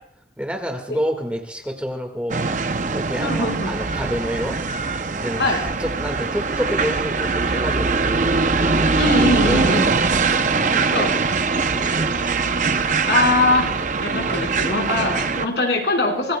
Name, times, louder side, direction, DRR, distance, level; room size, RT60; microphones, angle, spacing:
voice 1, 0.4-2.4 2.9-4.6 5.1-9.7 10.1-10.2 10.6-11.1 11.6-12.3 14.3-14.5 14.9-15.2, equal, 5° right, 3 dB, 1.8 m, -29 dB
sound 1, 2.3-15.5, right 4 dB, 45° right, 0.6 m, -22 dB
voice 2, 3.2-3.8 5.4-5.6 9.0-9.9 10.9-11.1 13.0-13.7 14.0-16.4, left 2 dB, 85° left, 1 dB, 4.6 m, -22 dB
25.0 x 20.0 x 2.3 m, 0.70 s
head